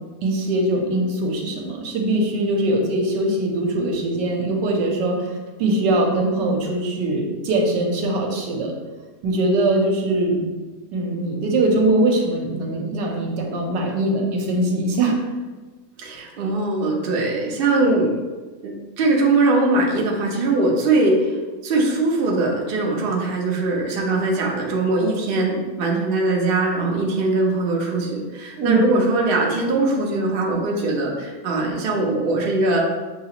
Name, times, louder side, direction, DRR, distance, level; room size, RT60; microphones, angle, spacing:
voice 1, 0.2-5.3 5.6-8.7 9.2-10.4 10.9-15.2 28.6-28.8, right 2 dB, 80° right, 0 dB, 1.4 m, -21 dB
voice 2, 16.0-18.2 18.6-21.3 21.6-32.8, right 2 dB, 55° right, -1 dB, 0.6 m, -21 dB
6.7 x 2.4 x 2.9 m, 1.3 s
omnidirectional pair, 1.9 m